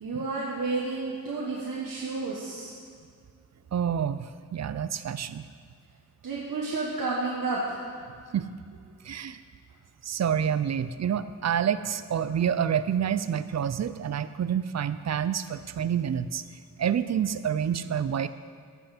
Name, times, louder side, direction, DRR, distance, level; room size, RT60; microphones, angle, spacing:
voice 1, 0.0-2.7 6.2-7.9, right 3 dB, 75° right, -5 dB, 1.5 m, -31 dB
voice 2, 3.7-5.4 8.3-8.5 9.0-9.4 10.0-16.4 16.8-18.3, right 8 dB, 55° right, 13 dB, 0.5 m, -28 dB
15.0 x 5.6 x 5.9 m, 2.2 s
wide cardioid pair, 120°, 33 cm